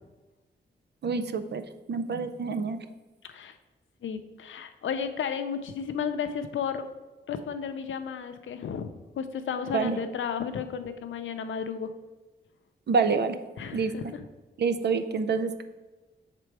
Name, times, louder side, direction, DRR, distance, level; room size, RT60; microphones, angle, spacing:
voice 1, 1.0-1.6 1.9-2.8 9.7-10.0 12.9-13.4 13.7-13.9 14.6-15.6, right 5 dB, 60° right, 9 dB, 0.5 m, -27 dB
voice 2, 4.0-6.9 7.3-11.9 13.6-14.2, left 7 dB, 85° left, 9 dB, 0.5 m, -33 dB
6.7 x 3.7 x 4.7 m, 1.2 s
cardioid pair, 75°, 19 cm